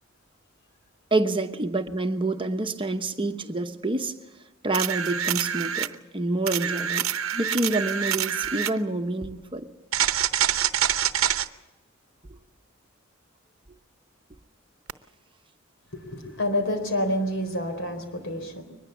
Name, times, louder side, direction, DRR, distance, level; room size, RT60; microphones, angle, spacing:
voice 1, 1.1-4.2 4.6-7.1 7.3-9.7, right 2 dB, 25° right, 1.0 m, -27 dB
sound 1, 4.7-5.9 6.5-8.8 9.9-11.5 14.9-15.0, right 10 dB, 80° right, 0.9 m, -26 dB
voice 2, 15.9-18.6, left 1 dB, 65° left, 4.2 m, -28 dB
23.0 x 20.5 x 7.1 m
head